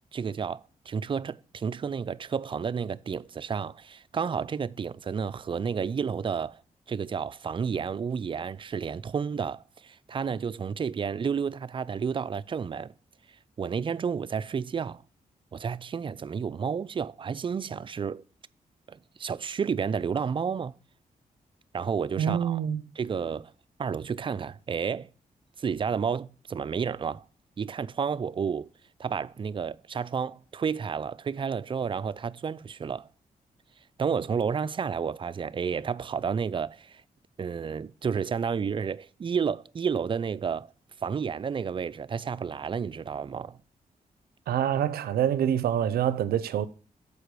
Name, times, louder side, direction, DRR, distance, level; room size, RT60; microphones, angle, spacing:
voice 1, 0.1-6.6 6.9-12.9 13.6-15.0 15.5-18.2 18.9-20.7 21.7-22.6 23.0-23.5 23.8-25.1 25.6-27.3 27.6-28.7 29.0-33.1 34.0-37.0 37.4-40.7 41.0-43.6, right 6 dB, 35° right, 0.3 m, -31 dB
voice 2, 22.2-22.8 44.5-46.7, right 9 dB, 90° right, 0.5 m, -26 dB
6.7 x 4.7 x 6.7 m
cardioid pair, 60°, 15 cm